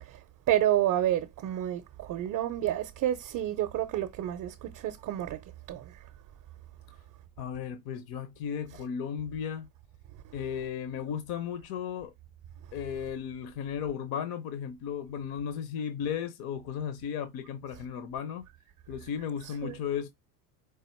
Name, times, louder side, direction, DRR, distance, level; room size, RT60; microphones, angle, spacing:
voice 1, 0.5-5.4 5.7-5.9 19.6-19.8, right 12 dB, 35° right, 0.6 m, -29 dB
voice 2, 7.4-9.7 10.3-12.1 12.7-18.4 18.9-20.1, left 8 dB, 50° left, 0.8 m, -35 dB
4.8 x 2.5 x 4.3 m
supercardioid pair, 115°, 49 cm